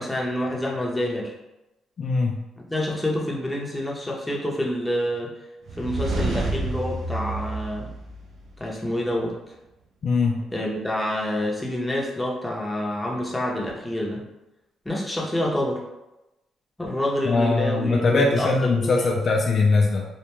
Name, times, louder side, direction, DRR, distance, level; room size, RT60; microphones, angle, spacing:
voice 1, 0.0-1.3 2.6-5.3 5.8-7.9 8.6-9.3 10.5-14.2 14.8-15.8 16.8-19.3, left 1 dB, 10° left, -2 dB, 0.6 m, -27 dB
voice 2, 2.0-2.4 10.0-10.4 17.3-20.1, left 3 dB, 50° left, 0 dB, 0.3 m, -21 dB
sound 1, 5.7-8.6, right 2 dB, 65° right, 0.5 m, -29 dB
2.5 x 2.2 x 3.0 m, 0.98 s
cardioid pair, 90°, 0 cm